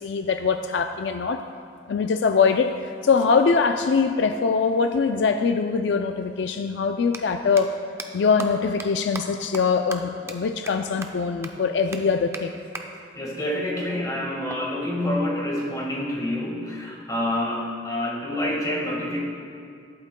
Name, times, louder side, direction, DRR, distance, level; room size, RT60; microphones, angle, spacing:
voice 1, 0.0-1.4 1.9-7.7 8.1-12.5, left 5 dB, 70° left, 7 dB, 0.4 m, -22 dB
sound 1, 5.8-5.9 7.0-7.2 7.6-7.7 8.0-8.1 8.4-8.5 8.8-8.9 9.1-9.2 9.5-9.6 9.9-10.0 10.3-10.4 10.7-10.8 11.0-11.1 11.4-11.5 11.9-12.0 12.3-12.4 12.7-12.8 14.5-15.5, right 3 dB, 15° right, 0.6 m, -36 dB
voice 2, 13.1-19.2, left 1 dB, 20° left, -3 dB, 1.6 m, -27 dB
19.0 x 8.7 x 2.2 m, 2.3 s
head